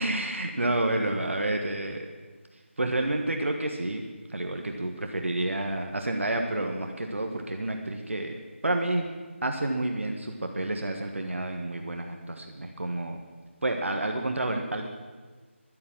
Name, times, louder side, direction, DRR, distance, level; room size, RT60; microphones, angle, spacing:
voice 1, 0.0-2.1 2.8-4.0 4.3-9.0 9.4-13.2 13.6-14.9, right 1 dB, 70° right, 4 dB, 1.4 m, -29 dB
11.5 x 10.5 x 7.5 m, 1.4 s
figure-of-eight pair, 160°, 7 cm